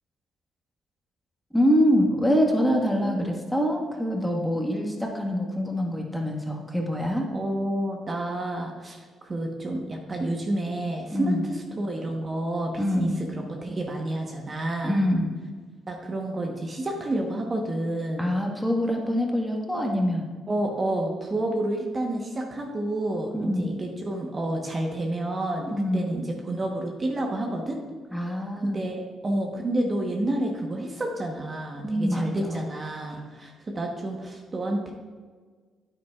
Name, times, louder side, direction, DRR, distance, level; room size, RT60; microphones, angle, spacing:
voice 1, 1.5-7.3 11.1-11.4 12.8-13.2 14.8-15.3 18.2-20.2 23.3-23.7 25.7-26.2 28.1-28.8 31.8-32.7, equal, ahead, 0 dB, 1.5 m, -25 dB
voice 2, 7.3-13.1 13.4-15.0 15.9-18.3 20.5-27.8 28.6-34.9, right 1 dB, 35° right, 1 dB, 1.1 m, -29 dB
9.4 x 8.9 x 2.4 m, 1.5 s
cardioid pair, 90°, 0 cm